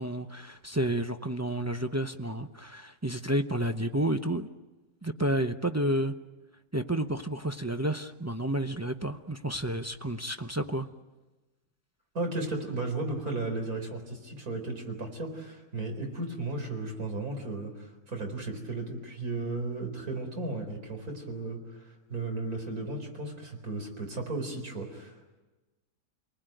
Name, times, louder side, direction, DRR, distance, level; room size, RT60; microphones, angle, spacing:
voice 1, 0.0-4.5 5.0-6.1 6.7-10.9, right 1 dB, 20° right, 6 dB, 0.4 m, -30 dB
voice 2, 12.1-25.4, right 2 dB, 60° right, 4 dB, 4.7 m, -35 dB
29.0 x 20.0 x 9.2 m, 1.2 s
omnidirectional pair, 1.8 m